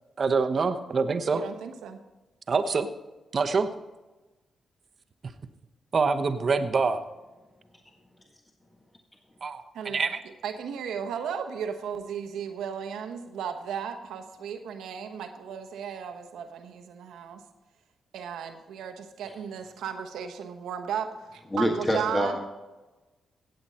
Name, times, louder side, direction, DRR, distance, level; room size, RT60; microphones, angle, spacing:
voice 1, 0.2-1.4 2.5-2.9 3.3-3.7 5.9-7.0 9.4-10.2, right 4 dB, 55° right, 8 dB, 1.0 m, -25 dB
voice 2, 1.3-2.0 9.7-10.0 10.4-17.4 18.1-22.4, right 7 dB, 80° right, 7 dB, 1.1 m, -35 dB
voice 3, 21.5-22.4, equal, 20° left, 1 dB, 1.7 m, -25 dB
17.0 x 7.9 x 4.3 m, 1.1 s
supercardioid pair, 45°, 0 cm